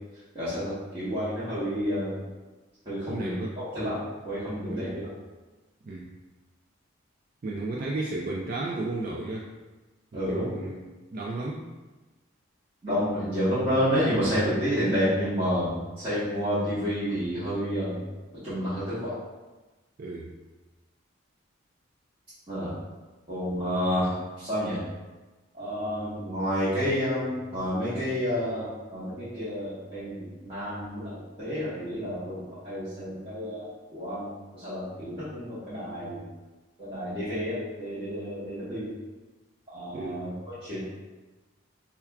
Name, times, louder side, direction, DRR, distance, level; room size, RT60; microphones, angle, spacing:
voice 1, 0.3-2.2 2.8-3.3 3.7-3.9 4.2-5.1 10.1-10.5 12.8-18.0 18.4-19.1 22.5-22.7 23.3-24.8 25.5-36.2 36.8-38.9 39.7-40.3 40.6-40.8, equal, 25° right, -15 dB, 1.1 m, -29 dB
voice 2, 3.0-3.6 4.7-4.9 5.8-6.1 7.4-9.5 10.1-11.7 20.0-20.3 39.9-40.3, right 2 dB, 45° right, -3 dB, 0.3 m, -34 dB
5.7 x 2.3 x 2.2 m, 1.2 s
head